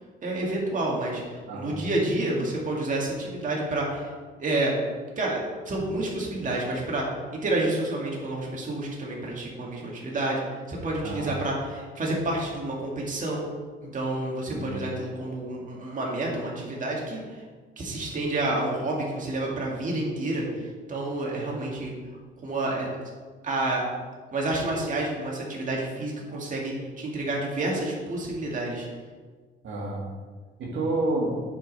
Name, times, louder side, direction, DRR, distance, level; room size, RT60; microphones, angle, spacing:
voice 1, 0.2-4.1 4.4-4.8 5.2-7.1 7.3-13.4 13.8-17.4 17.8-21.9 22.4-22.9 23.4-23.8 24.3-28.9, right 2 dB, 40° right, -3 dB, 2.0 m, -29 dB
voice 2, 1.5-1.9 11.0-11.3 14.5-14.7 29.6-30.0 30.6-31.3, right 2 dB, 70° right, -3 dB, 1.9 m, -29 dB
8.4 x 5.3 x 4.1 m, 1.5 s
cardioid pair, 90°, 20 cm